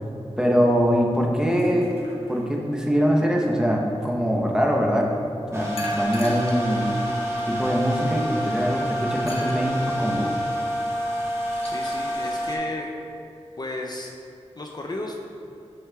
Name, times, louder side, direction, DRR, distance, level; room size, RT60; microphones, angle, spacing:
voice 1, 0.4-1.9 2.3-5.1 5.5-6.9 7.5-10.3, equal, 5° right, -2 dB, 0.9 m, -23 dB
sound 1, 1.5-2.6 5.8-6.6 7.4-7.5 9.3-9.6 11.3-12.0, left 1 dB, 60° left, 0.9 m, -38 dB
sound 2, 5.5-12.6, equal, 25° right, 1.5 m, -28 dB
voice 2, 11.6-12.9 13.6-14.1 14.6-15.2, left 2 dB, 40° left, 0 dB, 0.5 m, -33 dB
7.8 x 6.4 x 2.3 m, 2.6 s
wide cardioid pair, 55°, 11 cm